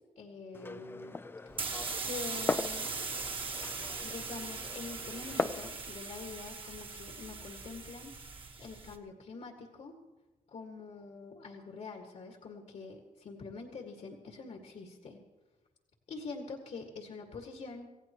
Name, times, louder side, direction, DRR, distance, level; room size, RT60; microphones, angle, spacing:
voice 1, 0.2-1.2 2.1-2.9 4.0-9.9 10.5-15.2 16.1-17.9, left 4 dB, 70° left, 1 dB, 2.0 m, -45 dB
Glass, 0.5-5.7, left 3 dB, 15° left, 0.4 m, -39 dB
sound 1, 1.5-9.0, right 4 dB, 40° right, 1.3 m, -40 dB
26.5 x 16.0 x 3.1 m, 1.2 s
wide cardioid pair, 135°, 14 cm